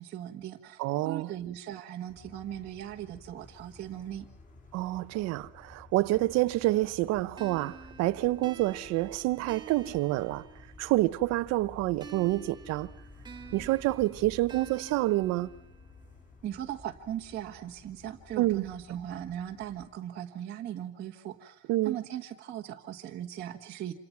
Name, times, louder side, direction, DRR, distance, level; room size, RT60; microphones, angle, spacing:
voice 1, 0.0-4.3 16.4-23.9, right 11 dB, 25° right, 1.6 m, -39 dB
voice 2, 0.8-1.3 4.7-10.5 10.8-12.9 13.5-15.5 18.4-18.7 21.7-22.0, right 18 dB, 45° right, 1.0 m, -28 dB
sound 1, 2.1-19.9, left 3 dB, 20° left, 7.3 m, -53 dB
sound 2, 7.4-11.0 12.0-16.0, right 6 dB, 10° right, 1.9 m, -49 dB
28.5 x 27.5 x 6.0 m
cardioid pair, 165°, 37 cm